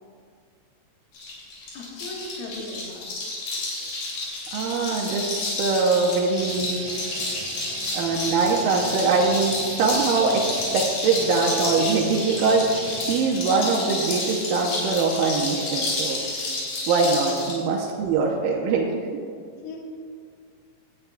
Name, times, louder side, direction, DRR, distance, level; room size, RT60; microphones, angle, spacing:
sound 1, 1.1-17.6, left 2 dB, 80° left, 4.2 m, -30 dB
voice 1, 1.7-3.1 17.4-18.0 19.6-19.8, left 2 dB, 55° left, -1 dB, 1.8 m, -38 dB
voice 2, 4.5-7.2 7.9-12.7 13.1-16.2 16.9-18.9, right 4 dB, 85° right, -2 dB, 2.5 m, -23 dB
sound 2, 6.3-13.2, right 5 dB, 70° right, 2.3 m, -38 dB
17.0 x 11.5 x 2.3 m, 2.2 s
omnidirectional pair, 3.9 m